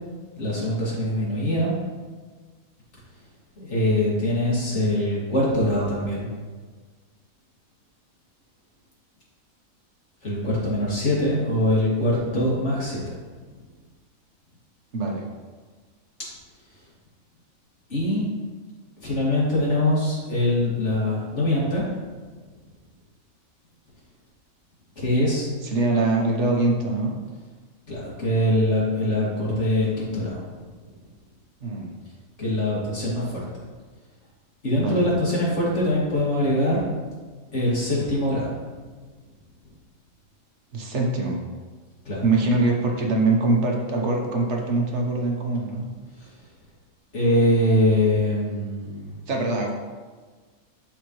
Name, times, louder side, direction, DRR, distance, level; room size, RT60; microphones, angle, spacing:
voice 1, 0.4-1.7 3.6-6.3 10.2-13.0 17.9-18.3 19.0-21.8 25.0-25.5 27.9-30.3 32.4-33.4 34.6-36.8 37.5-38.5 42.0-42.2 47.1-49.1, left 1 dB, 55° left, -7 dB, 2.7 m, -23 dB
voice 2, 14.9-15.2 25.6-27.2 31.6-31.9 34.7-35.1 40.7-41.5 42.2-45.9 49.3-49.7, right 2 dB, 55° right, 0 dB, 1.4 m, -23 dB
11.5 x 4.3 x 3.2 m, 1.4 s
omnidirectional pair, 1.4 m